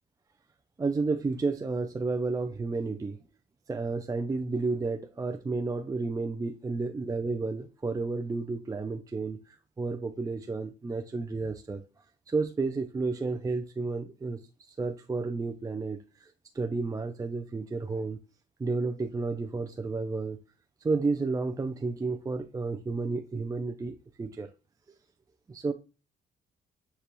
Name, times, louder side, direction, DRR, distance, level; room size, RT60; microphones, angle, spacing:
voice 1, 0.8-3.2 3.7-11.8 12.3-14.4 14.7-18.2 18.6-20.4 20.8-24.5 25.5-25.7, right 3 dB, 20° right, 0.4 m, -31 dB
6.7 x 2.3 x 3.0 m
cardioid pair, 90°, 20 cm